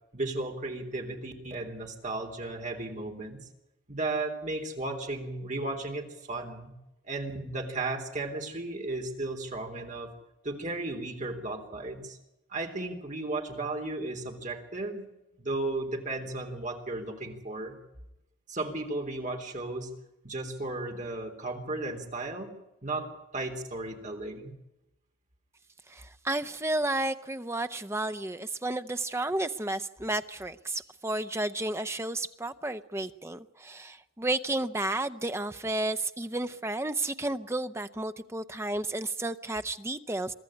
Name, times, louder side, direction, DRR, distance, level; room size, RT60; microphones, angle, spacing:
voice 1, 0.1-3.4 3.9-6.8 7.0-10.1 10.4-12.2 12.5-15.1 15.4-17.8 18.5-19.9 20.2-22.5 22.8-24.6, right 2 dB, 40° right, 3 dB, 3.5 m, -35 dB
voice 2, 25.9-40.3, right 2 dB, 15° right, 10 dB, 0.7 m, -32 dB
23.5 x 13.5 x 9.9 m, 0.91 s
head